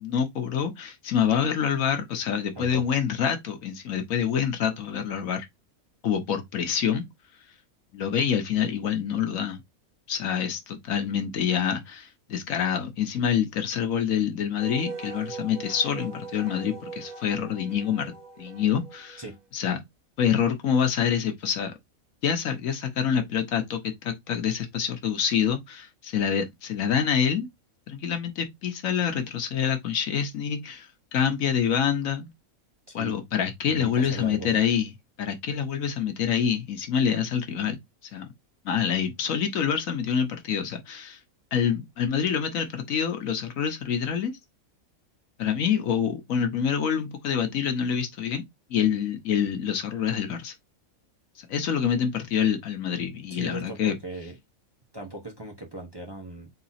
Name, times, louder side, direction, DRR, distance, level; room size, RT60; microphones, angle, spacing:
voice 1, 0.0-5.5 6.0-7.0 7.9-9.6 10.1-19.2 19.5-19.8 20.2-21.7 22.2-27.5 27.9-32.3 32.9-34.9 35.2-37.8 38.1-38.3 38.6-41.2 41.5-44.3 45.4-48.4 48.7-50.5 51.5-54.0, left 8 dB, 75° left, 1.3 m, -26 dB
Wind instrument woodwind instrument, 14.6-19.4, right 4 dB, 70° right, 1.2 m, -40 dB
voice 2, 32.9-33.2 33.7-34.5 53.3-54.4 54.9-56.5, right 2 dB, 20° right, 0.9 m, -38 dB
4.0 x 2.8 x 4.1 m
omnidirectional pair, 1.5 m